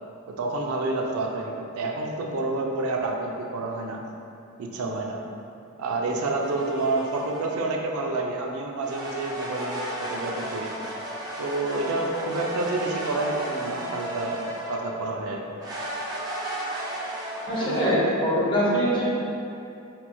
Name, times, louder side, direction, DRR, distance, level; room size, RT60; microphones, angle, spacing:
voice 1, 0.3-4.0 4.6-5.2 5.8-10.7 11.4-15.4 17.6-18.0, right 2 dB, 80° right, 1 dB, 0.4 m, -29 dB
sound 1, 6.4-7.6 8.8-14.9 15.6-17.8, right 1 dB, 20° right, 0.4 m, -34 dB
voice 2, 17.5-19.0, equal, 25° left, -7 dB, 0.7 m, -23 dB
4.4 x 2.9 x 2.2 m, 2.7 s
head